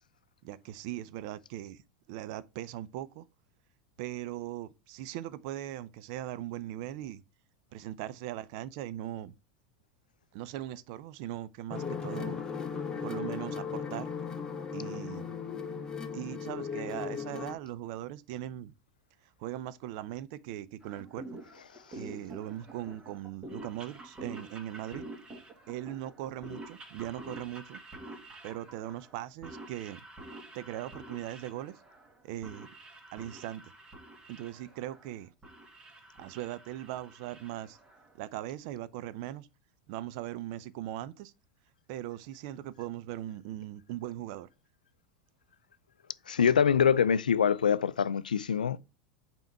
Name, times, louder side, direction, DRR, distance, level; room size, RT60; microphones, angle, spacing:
voice 1, 0.4-1.8 2.1-3.2 4.0-7.2 7.7-9.3 10.3-12.4 13.0-14.1 14.7-15.3 16.1-18.7 19.4-21.4 21.9-25.0 25.7-27.8 28.4-30.0 30.5-31.7 32.2-32.7 33.1-33.7 34.3-35.3 36.2-37.8 38.2-39.5 39.9-41.3 41.9-44.5, right 13 dB, 55° right, 0.5 m, -39 dB
sound 1, 11.7-17.5, left 6 dB, 15° left, 1.2 m, -37 dB
sound 2, 20.8-38.2, right 1 dB, 25° right, 1.9 m, -48 dB
voice 2, 46.3-48.8, left 7 dB, 85° left, 0.3 m, -24 dB
5.6 x 4.5 x 4.7 m
hypercardioid pair, 85°, 4 cm